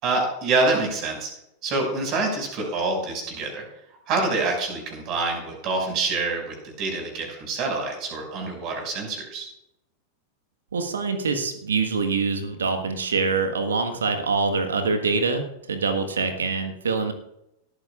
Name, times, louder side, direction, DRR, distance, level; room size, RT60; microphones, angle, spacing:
voice 1, 0.0-1.3 1.6-3.6 4.1-9.5, right 3 dB, 40° right, 2 dB, 6.0 m, -26 dB
voice 2, 10.7-17.1, right 4 dB, 70° right, 7 dB, 1.5 m, -25 dB
20.0 x 13.5 x 2.5 m, 0.82 s
figure-of-eight pair, 90°, 0 cm